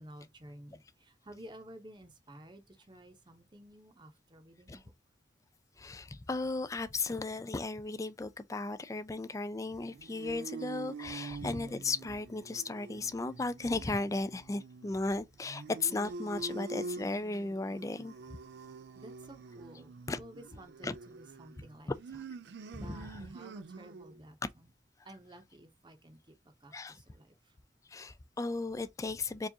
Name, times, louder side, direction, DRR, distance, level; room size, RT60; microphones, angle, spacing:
voice 1, 0.0-4.9 18.9-21.9 22.8-24.7 25.0-26.4 26.6-27.5, right 1 dB, 25° right, 0.8 m, -53 dB
voice 2, 5.8-18.1 20.1-20.2 20.8-20.9 22.7-23.3 25.0-25.1 26.7-27.0 27.9-29.5, left 3 dB, 15° left, 0.3 m, -36 dB
sound 1, 9.7-24.2, right 3 dB, 65° right, 0.3 m, -46 dB
4.6 x 2.4 x 2.7 m
head